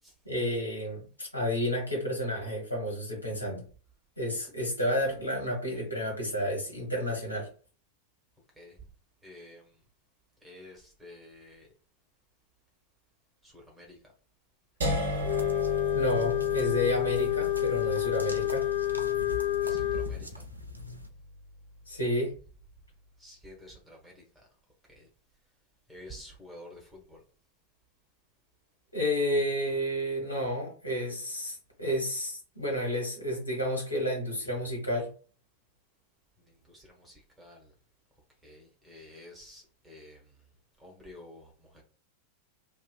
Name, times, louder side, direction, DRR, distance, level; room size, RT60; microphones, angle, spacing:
voice 1, 0.2-3.6 4.2-7.5 15.9-18.7 21.9-22.3 28.9-35.1, equal, 85° left, 1.3 m, -31 dB
voice 2, 8.5-8.9 9.2-9.8 10.4-11.7 13.4-14.1 19.6-20.5 23.2-24.5 24.9-25.1 25.9-27.2 36.4-37.7 38.4-40.4 40.8-41.8, left 1 dB, 5° right, 1.1 m, -51 dB
sound 1, 14.8-20.7, left 1 dB, 60° right, 0.8 m, -35 dB
sound 2, 14.9-21.1, left 1 dB, 85° right, 0.4 m, -43 dB
Wind instrument woodwind instrument, 15.2-20.1, left 14 dB, 45° left, 0.7 m, -29 dB
2.9 x 2.4 x 2.3 m
figure-of-eight pair, 90°, 0 cm